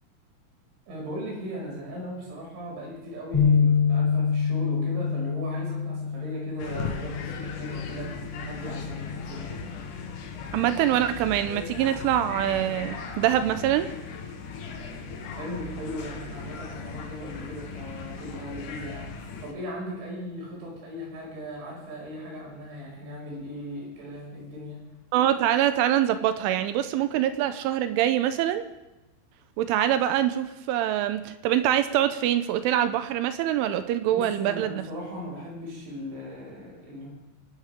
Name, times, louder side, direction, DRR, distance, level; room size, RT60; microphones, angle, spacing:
voice 1, 0.9-9.7 15.4-19.1 19.4-24.8 34.1-37.1, equal, 65° right, -3 dB, 8.0 m, -38 dB
sound 1, 3.3-9.6, left 6 dB, 10° left, 1.7 m, -27 dB
sound 2, 6.6-19.5, left 5 dB, 75° left, 1.8 m, -38 dB
voice 2, 10.5-13.9 25.1-28.7 29.6-34.8, right 11 dB, 80° right, 10 dB, 3.1 m, -24 dB
24.5 x 12.5 x 3.6 m, 1.0 s
omnidirectional pair, 5.8 m